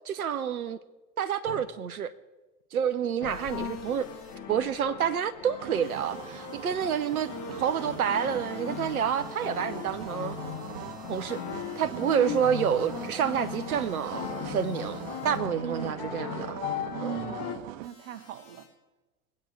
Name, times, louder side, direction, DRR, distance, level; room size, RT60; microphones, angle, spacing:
voice 1, 0.1-0.8 1.2-2.1 2.7-4.1 4.5-7.3 7.6-10.4 11.1-11.4 11.8-15.0 15.2-16.6 17.0-17.2, right 8 dB, 80° right, 0.7 m, -28 dB
sound 1, 1.5-1.6 3.2-17.6, left 8 dB, 40° left, 1.6 m, -38 dB
sound 2, 3.2-4.4 5.8-15.4 17.8-18.7, left 3 dB, 80° left, 4.5 m, -57 dB
sound 3, 5.6-17.9, right 16 dB, 35° right, 0.4 m, -42 dB
voice 2, 11.9-12.4 15.6-16.1 16.9-18.6, right 3 dB, 50° right, 1.3 m, -38 dB
22.0 x 8.4 x 4.5 m
figure-of-eight pair, 80°, 43 cm